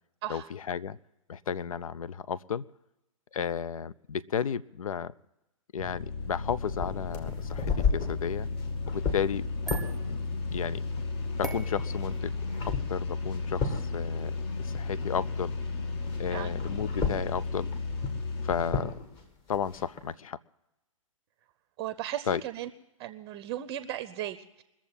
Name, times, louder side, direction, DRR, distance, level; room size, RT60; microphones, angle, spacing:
voice 1, 0.3-1.0 1.3-2.6 3.3-5.1 5.7-8.5 8.9-9.5 10.1-10.2 10.5-10.8 11.4-12.3 12.7-15.5 16.2-17.7 18.4-19.0 19.5-20.4 22.3-22.4, left 8 dB, 80° left, 18 dB, 0.5 m, -33 dB
sound 1, 5.8-18.7, left 3 dB, 50° left, 1.8 m, -34 dB
sound 2, 6.4-15.6 15.8-20.0, left 5 dB, 30° left, 2.0 m, -35 dB
sound 3, 9.2-15.4, right 1 dB, ahead, 1.2 m, -45 dB
voice 2, 16.3-16.6 21.8-22.7 23.0-24.6, right 12 dB, 30° right, 12 dB, 0.6 m, -36 dB
21.5 x 7.3 x 8.8 m, 0.95 s
hypercardioid pair, 125°, 17 cm